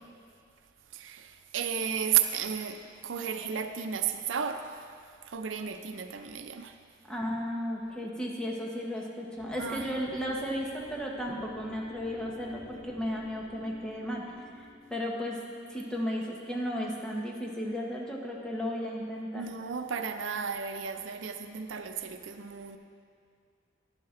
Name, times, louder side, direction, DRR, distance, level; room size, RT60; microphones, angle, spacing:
voice 1, 0.9-4.9 5.3-6.7 9.6-10.0 19.3-22.8, right 8 dB, 90° right, 7 dB, 0.6 m, -33 dB
voice 2, 7.1-14.2 14.9-15.4 15.7-19.5, equal, 5° left, -2 dB, 1.1 m, -34 dB
sound 1, 9.4-16.0, equal, 75° left, 2.4 m, -52 dB
11.5 x 9.7 x 3.8 m, 2.2 s
head